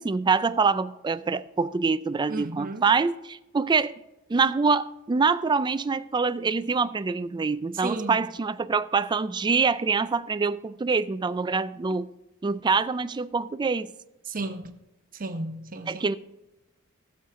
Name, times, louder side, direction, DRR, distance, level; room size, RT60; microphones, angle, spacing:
voice 1, 0.0-3.9 4.3-12.1 12.4-13.9 15.9-16.2, right 4 dB, 20° right, 0.3 m, -25 dB
voice 2, 2.3-2.8 7.7-8.3 14.2-14.8 15.1-16.1, right 2 dB, 40° right, 0.9 m, -33 dB
13.0 x 7.2 x 3.7 m
head